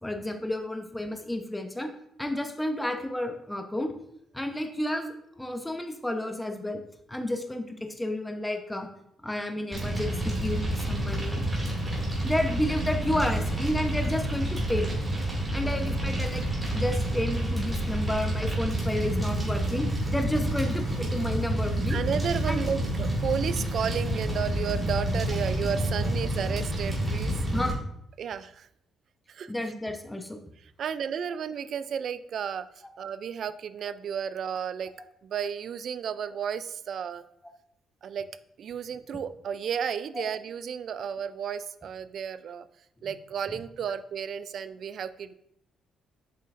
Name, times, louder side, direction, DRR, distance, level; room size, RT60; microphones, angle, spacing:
voice 1, 0.0-1.9 2.2-3.9 4.3-6.8 7.1-8.9 9.2-11.4 12.2-15.0 15.5-16.4 16.7-22.0 22.5-22.6 27.5-27.8 29.5-30.4 43.5-43.6, left 1 dB, 10° left, 5 dB, 0.8 m, -31 dB
Fire, 9.7-27.7, right 1 dB, 15° right, 2.4 m, -29 dB
voice 2, 21.9-27.4 28.2-28.7 29.3-29.7 30.8-32.7 33.0-34.9 35.2-37.2 38.0-38.3 38.6-42.7 43.0-45.3, right 7 dB, 60° right, 14 dB, 0.4 m, -33 dB
7.5 x 5.6 x 2.5 m, 0.74 s
cardioid pair, 90°, 0 cm